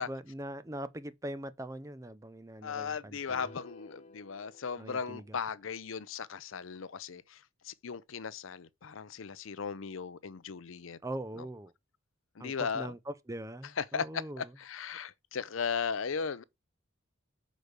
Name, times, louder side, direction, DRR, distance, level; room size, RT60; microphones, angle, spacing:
voice 1, 0.0-3.5 4.8-5.4 11.0-11.7 12.4-14.6, right 1 dB, 15° right, 0.6 m, -42 dB
voice 2, 2.6-7.4 7.6-11.0 12.4-12.9 13.8-14.1 14.4-16.4, left 6 dB, 75° left, 0.6 m, -37 dB
sound 1, 3.3-5.6, left 2 dB, 30° left, 0.6 m, -53 dB
6.3 x 5.1 x 6.6 m
head